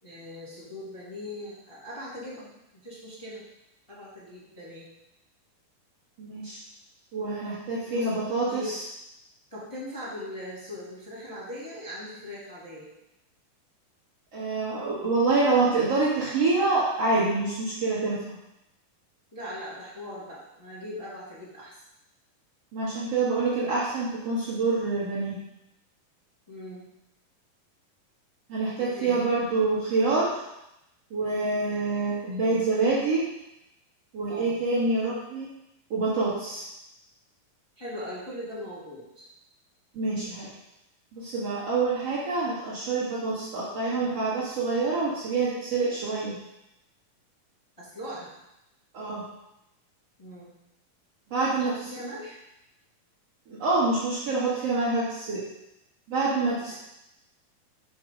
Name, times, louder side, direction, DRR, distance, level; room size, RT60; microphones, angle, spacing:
voice 1, 0.0-3.4 3.9-4.9 7.9-8.1 8.5-8.8 9.5-12.9 19.3-21.8 26.5-26.9 28.8-29.3 34.3-34.6 37.8-39.3 47.8-48.3 50.2-50.5 51.6-52.4, left 1 dB, 10° left, -9 dB, 2.0 m, -40 dB
voice 2, 6.2-6.6 7.1-8.8 14.3-18.4 22.7-25.4 28.5-30.4 31.1-33.2 34.1-35.5 35.9-36.6 40.0-40.5 41.1-46.4 48.9-49.2 51.3-51.7 53.5-55.4 56.1-56.7, right 3 dB, 55° right, -9 dB, 2.1 m, -26 dB
6.4 x 5.2 x 5.2 m, 0.88 s
omnidirectional pair, 4.1 m